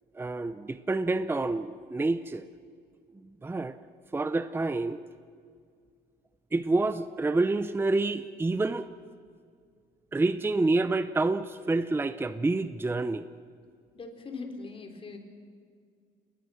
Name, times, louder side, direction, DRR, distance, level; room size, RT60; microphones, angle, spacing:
voice 1, 0.2-2.5 3.4-3.8 4.1-5.0 6.5-8.9 10.1-13.2, right 2 dB, 15° right, 12 dB, 0.7 m, -28 dB
voice 2, 13.9-15.2, left 4 dB, 35° left, 4 dB, 4.0 m, -40 dB
29.5 x 20.5 x 6.5 m, 2.1 s
cardioid pair, 110°, 17 cm